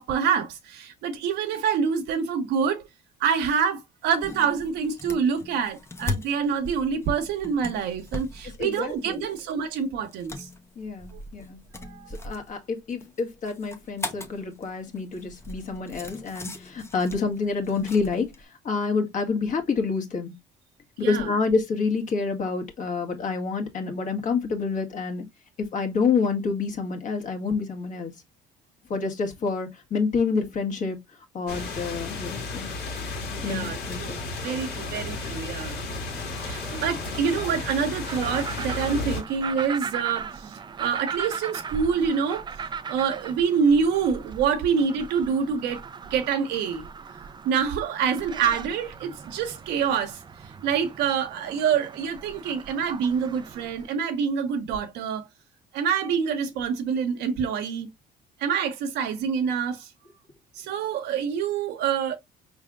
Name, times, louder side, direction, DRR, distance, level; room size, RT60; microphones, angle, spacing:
voice 1, 0.0-2.8 3.2-10.5 11.1-11.2 11.8-12.1 21.0-21.3 33.4-34.2 34.4-35.8 36.4-42.5 42.9-45.8 46.1-46.8 47.4-50.2 50.6-55.3 55.7-57.9 58.4-59.9 60.6-62.2, right 6 dB, 85° right, 1.0 m, -26 dB
sound 1, 4.0-18.4, left 2 dB, 15° left, 0.7 m, -39 dB
voice 2, 8.6-9.3 10.7-11.6 12.2-20.3 21.0-25.2 25.6-28.1 28.9-31.0 31.3-32.7 33.4-34.1, left 4 dB, 50° left, 1.5 m, -28 dB
sound 2, 31.5-39.2, left 3 dB, 75° left, 1.8 m, -33 dB
sound 3, 36.1-53.9, right 6 dB, 25° right, 0.4 m, -38 dB
4.9 x 3.3 x 2.3 m
cardioid pair, 110°, 17 cm